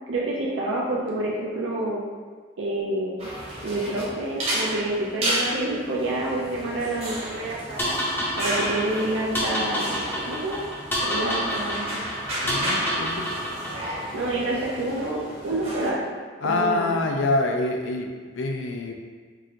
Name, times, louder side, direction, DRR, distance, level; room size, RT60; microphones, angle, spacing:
voice 1, 0.1-2.0 2.6-3.3 3.6-8.0 8.3-10.6 11.0-12.0 14.1-16.1 16.4-17.0, right 2 dB, 75° right, -4 dB, 0.5 m, -28 dB
sound 1, 3.2-15.9, right 1 dB, 30° right, 0.8 m, -33 dB
sound 2, 7.8-14.0, equal, 10° left, 0.6 m, -29 dB
voice 2, 12.4-13.3 16.4-18.9, left 2 dB, 75° left, 2 dB, 0.5 m, -26 dB
4.6 x 2.5 x 2.9 m, 1.6 s
head